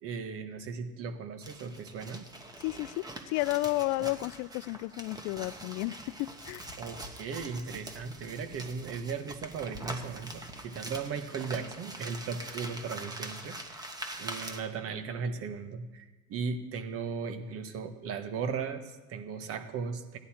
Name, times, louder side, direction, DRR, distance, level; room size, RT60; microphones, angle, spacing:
voice 1, 0.0-2.2 4.0-4.1 6.8-13.9 14.2-20.2, right 5 dB, 45° right, 8 dB, 1.3 m, -37 dB
sound 1, 1.4-14.6, right 1 dB, 10° right, 1.1 m, -43 dB
voice 2, 2.6-6.7, left 19 dB, 55° left, 20 dB, 0.4 m, -32 dB
15.5 x 10.5 x 4.4 m, 1.2 s
supercardioid pair, 120°, 32 cm